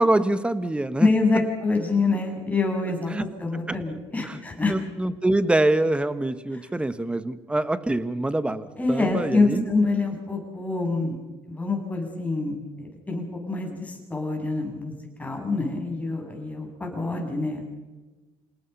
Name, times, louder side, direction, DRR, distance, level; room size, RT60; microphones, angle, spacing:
voice 1, 0.0-1.1 3.1-3.2 3.5-3.8 4.2-4.4 4.7-9.7, right 2 dB, 10° right, 13 dB, 1.5 m, -25 dB
voice 2, 1.0-4.7 8.8-11.2 11.5-17.6, left 3 dB, 15° left, 2 dB, 7.1 m, -26 dB
27.5 x 18.5 x 5.7 m, 1.2 s
supercardioid pair, 85°, 11 cm